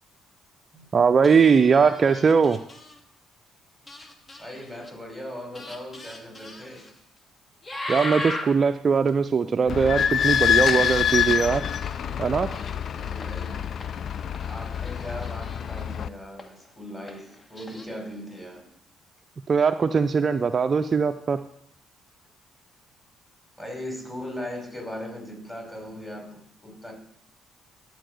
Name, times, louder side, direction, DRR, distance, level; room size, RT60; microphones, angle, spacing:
voice 1, 0.9-2.6 7.9-11.6 12.2-12.5 19.5-21.4, right 5 dB, 40° right, 10 dB, 0.4 m, -20 dB
sound 1, 1.2-3.0 3.9-4.9 5.5-7.0 7.6-8.7 9.1-9.2 10.4-12.0 12.5-15.8 16.4-16.7 17.1-17.9, left 1 dB, 30° left, 1.4 m, -38 dB
voice 2, 4.4-6.9 13.0-13.6 14.5-18.7 23.6-26.9, left 1 dB, 10° left, 0 dB, 5.1 m, -38 dB
Idling / Squeak, 9.7-16.1, left 8 dB, 55° left, 0.4 m, -26 dB
13.5 x 4.6 x 6.8 m, 0.71 s
hypercardioid pair, 45°, 0 cm